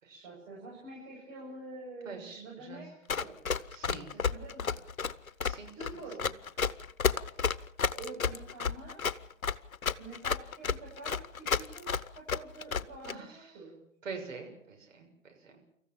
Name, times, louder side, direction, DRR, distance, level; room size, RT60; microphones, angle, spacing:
voice 1, 0.2-3.4 4.3-4.8 5.8-6.5 7.9-9.1 10.0-11.9 12.2-13.8, right 2 dB, 40° right, -3 dB, 7.7 m, -47 dB
voice 2, 2.0-2.8 3.7-4.1 5.4-6.0 7.1-7.2 13.1-13.5 14.0-15.6, right 4 dB, 65° right, 4 dB, 7.0 m, -45 dB
Run, 3.1-13.1, left 6 dB, 90° left, 1.0 m, -31 dB
26.0 x 14.5 x 7.4 m, 0.75 s
hypercardioid pair, 130°, 41 cm